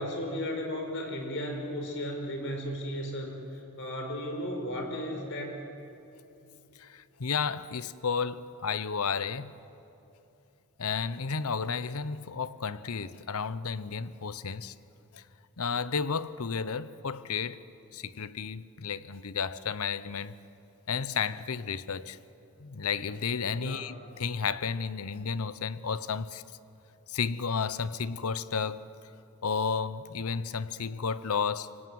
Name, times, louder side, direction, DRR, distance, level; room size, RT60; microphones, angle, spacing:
voice 1, 0.0-5.6 23.6-24.0, equal, 55° left, 4.9 m, -35 dB
voice 2, 6.8-9.5 10.8-14.7 15.1-15.2 15.6-17.6 17.9-20.3 20.9-22.2 22.6-26.4 27.1-28.8 29.4-31.8, left 5 dB, 80° left, 0.8 m, -32 dB
25.5 x 24.0 x 9.4 m
head